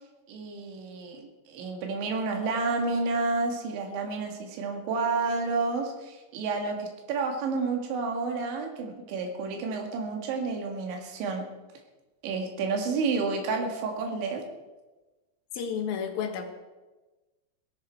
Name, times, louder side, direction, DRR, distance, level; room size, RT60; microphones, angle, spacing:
voice 1, 0.3-11.5 12.2-14.4, right 4 dB, 90° right, 2 dB, 4.1 m, -30 dB
voice 2, 15.5-16.4, left 7 dB, 65° left, 4 dB, 2.7 m, -31 dB
18.5 x 12.5 x 4.5 m, 1.2 s
omnidirectional pair, 5.1 m